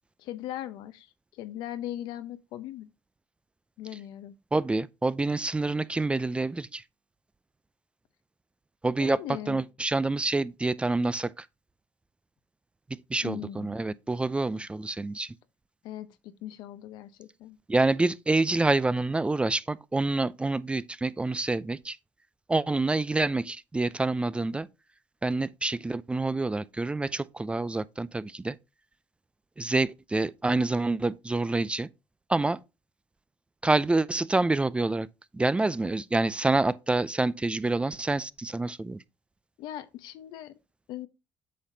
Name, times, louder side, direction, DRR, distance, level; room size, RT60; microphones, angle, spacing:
voice 1, 0.2-2.9 3.8-4.4 9.0-9.6 13.2-13.7 15.8-17.6 39.6-40.6 40.9-41.1, left 12 dB, 75° left, 0.9 m, -39 dB
voice 2, 4.5-6.8 8.8-9.2 9.5-11.5 12.9-15.3 17.7-22.0 22.5-24.7 25.2-28.6 29.6-31.9 32.3-32.6 33.6-35.1 35.3-39.0, right 2 dB, 15° right, 0.4 m, -27 dB
8.5 x 5.7 x 2.7 m
supercardioid pair, 80°, 8 cm